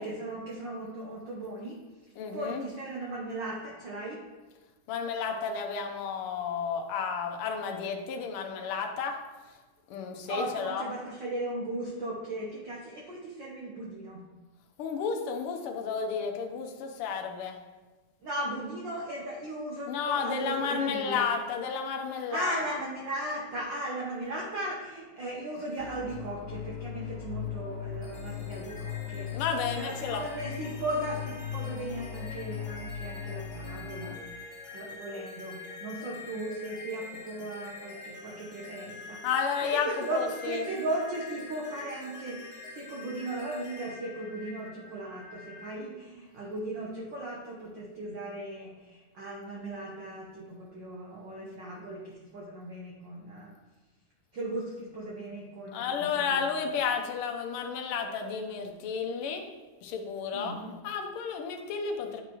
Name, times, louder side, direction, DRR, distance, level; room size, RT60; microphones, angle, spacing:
voice 1, 0.0-1.7 2.3-4.2 10.3-14.2 18.2-21.3 22.1-29.4 29.7-39.2 39.6-53.5 54.3-56.5 60.3-60.7, right 1 dB, 75° right, -3 dB, 1.0 m, -37 dB
voice 2, 2.2-2.7 4.9-9.2 9.9-10.9 14.8-17.6 19.9-22.6 29.3-30.2 39.2-40.7 55.7-59.5 59.8-62.2, left 6 dB, 70° left, 3 dB, 1.3 m, -32 dB
sound 1, 25.8-34.2, left 9 dB, 90° left, 2.1 m, -38 dB
sound 2, 28.0-45.7, left 3 dB, 35° left, 1.3 m, -46 dB
10.0 x 5.3 x 3.0 m, 1.3 s
omnidirectional pair, 3.4 m